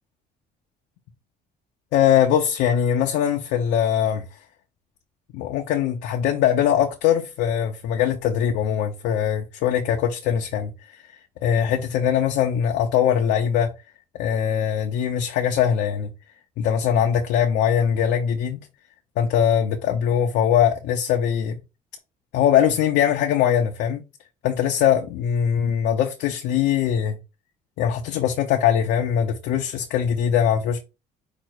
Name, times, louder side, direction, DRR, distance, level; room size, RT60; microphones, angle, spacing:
voice 1, 1.9-4.2 5.3-11.0 11.4-13.7 14.2-16.1 16.6-18.6 19.2-21.6 22.3-24.0 24.4-27.2 27.8-30.8, left 9 dB, 85° left, 0.7 m, -21 dB
5.0 x 2.1 x 4.5 m
cardioid pair, 110°, 17 cm